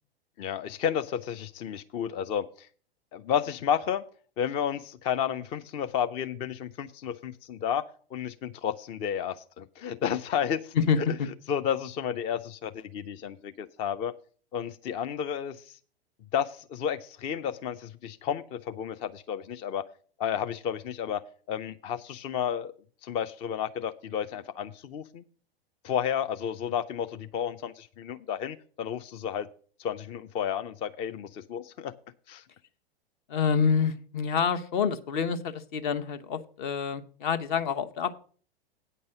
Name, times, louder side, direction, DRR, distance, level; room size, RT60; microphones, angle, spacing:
voice 1, 0.4-2.7 3.1-4.0 4.4-7.8 8.1-10.7 11.5-14.1 14.5-15.8 16.3-19.8 20.2-21.2 21.5-22.7 23.0-25.2 25.8-29.5 29.8-31.9 32.3-32.4, left 8 dB, 20° left, 10 dB, 0.3 m, -32 dB
voice 2, 33.3-38.1, left 6 dB, 50° left, 10 dB, 1.0 m, -27 dB
9.0 x 5.4 x 7.4 m, 0.43 s
figure-of-eight pair, 95°, 31 cm